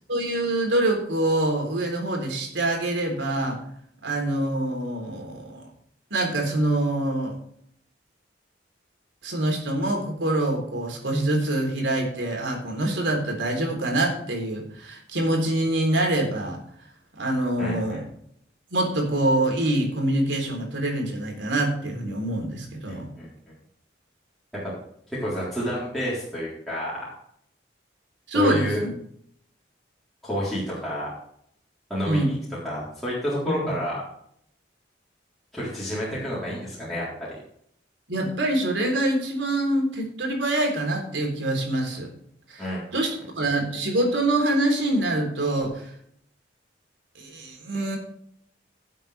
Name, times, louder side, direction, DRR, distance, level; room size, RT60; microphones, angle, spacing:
voice 1, 0.1-3.6 4.0-5.7 6.1-7.4 9.2-16.6 17.2-18.0 18.7-23.1 28.3-28.9 32.1-32.3 33.5-33.6 38.1-42.1 42.5-45.9 47.2-48.0, right 1 dB, 90° right, 1 dB, 3.7 m, -25 dB
voice 2, 17.6-18.0 22.9-23.5 25.2-27.1 28.3-28.8 30.2-31.1 31.9-32.4 32.6-34.0 35.5-37.0 42.6-42.8, equal, ahead, -9 dB, 3.9 m, -29 dB
17.0 x 7.6 x 3.4 m, 0.68 s
head